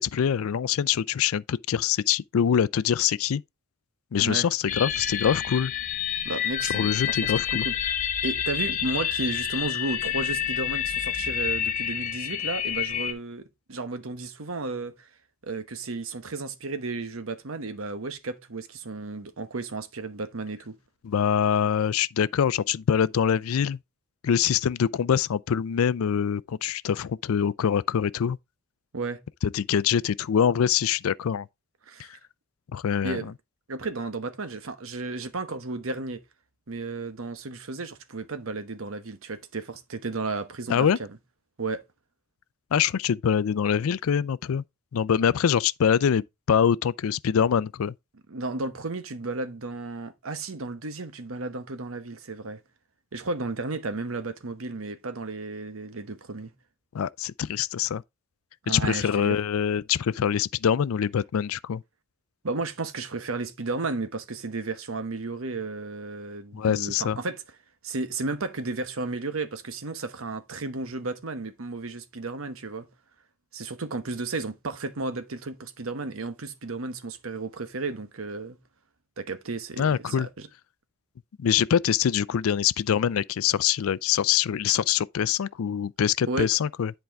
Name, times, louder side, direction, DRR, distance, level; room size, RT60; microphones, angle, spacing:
voice 1, 0.0-3.4 4.1-5.7 6.7-7.6 21.0-23.8 24.2-28.4 29.5-31.5 32.7-33.3 40.7-41.0 42.7-44.6 44.9-47.9 56.9-58.0 58.7-61.8 66.5-67.2 79.8-80.3 81.4-86.9, left 8 dB, 80° left, 0.4 m, -24 dB
sound 1, 4.7-13.1, left 9 dB, 40° left, 0.9 m, -29 dB
voice 2, 6.2-15.1 15.4-20.8 28.9-29.2 31.9-32.1 33.0-33.3 33.7-36.2 36.7-41.1 41.6-41.8 48.3-52.6 53.1-56.5 58.7-59.4 62.4-67.4 67.8-72.9 73.5-78.6 79.2-80.5 86.3-86.5, right 3 dB, 75° right, 1.0 m, -33 dB
10.5 x 4.6 x 3.5 m
head